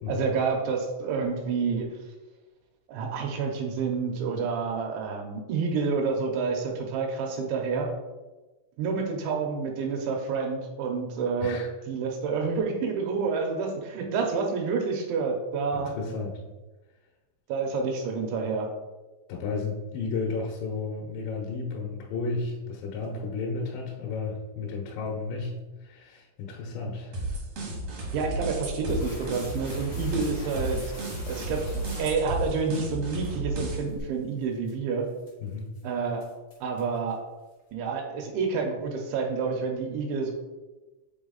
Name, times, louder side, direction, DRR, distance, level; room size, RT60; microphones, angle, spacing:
voice 1, 0.1-1.9 2.9-7.9 8.8-11.6 11.9-15.9 17.5-18.7 28.1-30.8 31.3-31.6 32.0-35.0 35.8-36.2 36.6-37.2 37.7-40.3, right 5 dB, 80° right, 1 dB, 3.0 m, -28 dB
voice 2, 11.4-11.7 15.7-16.4 19.3-25.5 25.8-27.3 35.4-35.7, left 4 dB, 80° left, -1 dB, 2.9 m, -33 dB
sound 1, 27.1-34.0, right 2 dB, 65° right, 1.7 m, -33 dB
sound 2, 28.9-32.8 33.2-33.3 33.9-34.0 34.4-34.7 35.2-35.5 35.7-35.8 36.2-37.0, right 1 dB, 55° left, 1.1 m, -42 dB
6.9 x 4.0 x 3.9 m, 1.1 s
omnidirectional pair, 5.5 m